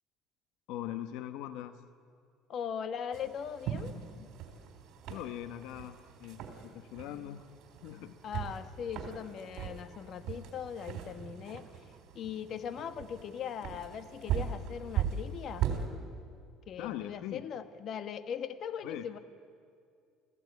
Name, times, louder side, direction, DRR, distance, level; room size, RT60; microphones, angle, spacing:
voice 1, 0.7-1.8 5.1-7.5 7.8-8.2 16.8-17.4 18.8-19.0, left 12 dB, 75° left, 10 dB, 1.0 m, -41 dB
voice 2, 2.5-3.9 4.2-4.3 8.2-11.6 12.1-15.7 16.7-19.2, left 8 dB, 50° left, 10 dB, 1.3 m, -40 dB
sound 1, 3.1-15.9, right 9 dB, 65° right, 3.6 m, -39 dB
28.0 x 16.0 x 9.4 m, 2.3 s
cardioid pair, 130°, 0 cm